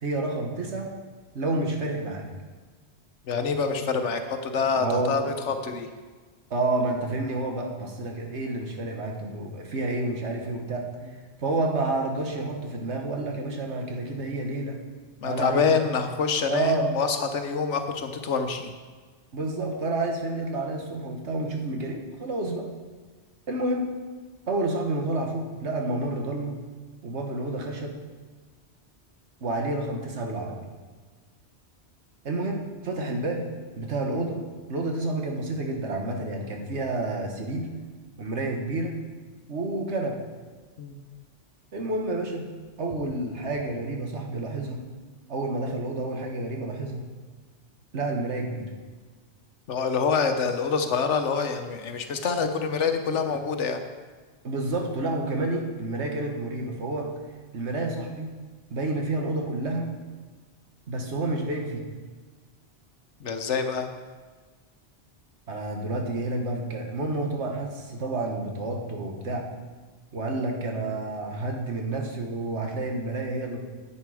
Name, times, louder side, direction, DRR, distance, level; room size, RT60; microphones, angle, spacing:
voice 1, 0.0-0.9 1.3-2.3 4.8-5.1 6.5-10.8 11.4-14.8 15.2-16.0 16.5-16.9 19.3-22.7 23.5-23.9 24.5-26.6 27.0-27.9 29.4-30.6 32.2-33.5 33.7-34.4 34.7-37.7 38.2-39.0 39.5-40.2 41.7-42.5 42.8-44.8 45.3-47.0 47.9-48.7 54.4-57.1 57.5-58.3 58.7-59.9 60.9-61.9 65.5-69.4 70.1-73.6, right 2 dB, 75° right, 2 dB, 1.6 m, -29 dB
voice 2, 3.3-5.9 15.2-18.7 40.8-41.0 49.7-53.8 63.2-63.9, left 5 dB, 80° left, 7 dB, 1.2 m, -26 dB
9.9 x 8.3 x 4.9 m, 1.4 s
omnidirectional pair, 1.2 m